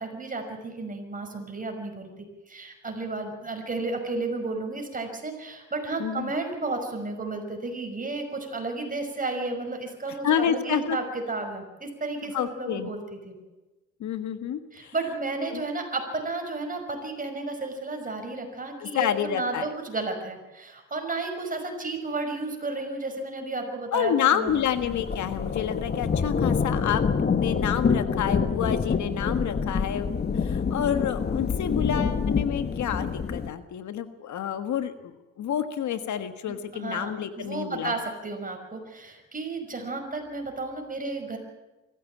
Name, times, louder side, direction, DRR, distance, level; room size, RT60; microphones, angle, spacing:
voice 1, 0.0-2.1 2.5-13.4 14.7-24.5 36.5-37.1 37.4-41.4, right 3 dB, 25° right, 4 dB, 5.8 m, -32 dB
voice 2, 6.0-6.3 10.2-11.0 12.3-12.9 14.0-14.9 15.5-15.6 18.8-19.7 23.9-30.1 30.3-37.9, left 9 dB, 70° left, 10 dB, 1.6 m, -29 dB
sound 1, 24.5-33.5, left 5 dB, 35° left, 1.3 m, -27 dB
23.5 x 15.0 x 8.6 m, 1.1 s
cardioid pair, 90°, 30 cm